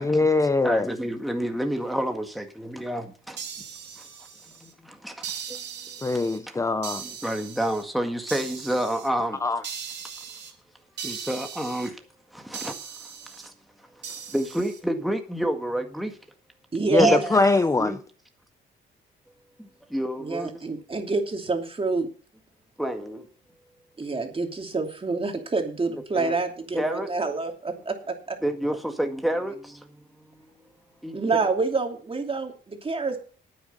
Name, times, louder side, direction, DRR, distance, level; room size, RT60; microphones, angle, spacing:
voice 1, 0.0-0.9 6.0-7.0 9.4-9.6 16.9-17.9, left 3 dB, 15° left, 0.6 m, -22 dB
voice 2, 0.6-3.4 4.0-4.1 4.5-5.6 6.5-6.6 7.0-9.4 11.0-12.0 12.3-13.5 14.0-16.2 17.0-17.4 17.8-18.0 19.6-20.5 22.8-23.3 26.1-26.3 26.7-27.1 28.4-30.0 31.0-31.2, right 1 dB, ahead, 1.8 m, -29 dB
sound 1, 3.4-4.7 5.2-6.4 6.8-7.8 8.3-9.1 9.6-10.5 11.0-11.9 12.5-13.5 14.0-14.8, right 7 dB, 60° right, 3.2 m, -38 dB
voice 3, 16.7-17.2 20.2-22.1 24.0-28.4 31.1-33.2, right 3 dB, 30° right, 2.9 m, -27 dB
9.5 x 9.2 x 6.9 m
cardioid pair, 90°, 20 cm